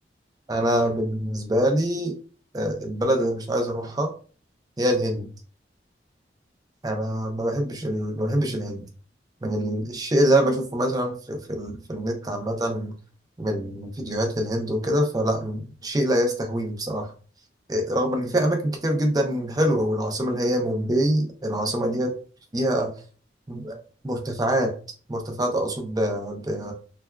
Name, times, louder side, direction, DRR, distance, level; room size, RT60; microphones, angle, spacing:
voice 1, 0.5-2.1 2.5-4.1 4.8-5.3 6.8-8.9 9.4-13.0 13.4-17.1 17.7-22.1 22.5-22.9 23.5-23.8 24.0-24.7 25.1-26.7, right 1 dB, 20° right, 3 dB, 0.5 m, -25 dB
3.2 x 2.3 x 2.2 m, 0.40 s
head